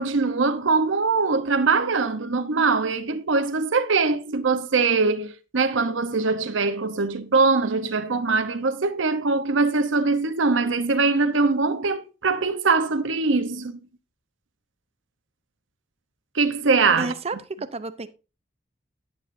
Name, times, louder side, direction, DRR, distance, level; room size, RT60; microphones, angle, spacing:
voice 1, 0.0-13.8 16.3-17.1, right 4 dB, 75° right, 0.8 m, -22 dB
voice 2, 17.0-18.1, right 3 dB, 35° right, 0.7 m, -31 dB
10.5 x 8.8 x 2.6 m
head